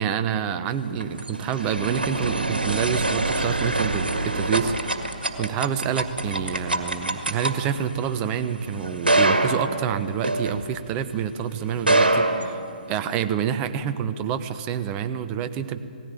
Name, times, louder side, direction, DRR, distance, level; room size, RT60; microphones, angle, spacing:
voice 1, 0.0-5.0 5.4-12.6 12.9-15.8, right 8 dB, 20° right, 10 dB, 0.9 m, -27 dB
sound 1, 0.7-11.1 11.7-13.2, right 2 dB, 85° right, 1.9 m, -25 dB
18.5 x 15.5 x 9.2 m, 2.4 s
figure-of-eight pair, 135°, 5 cm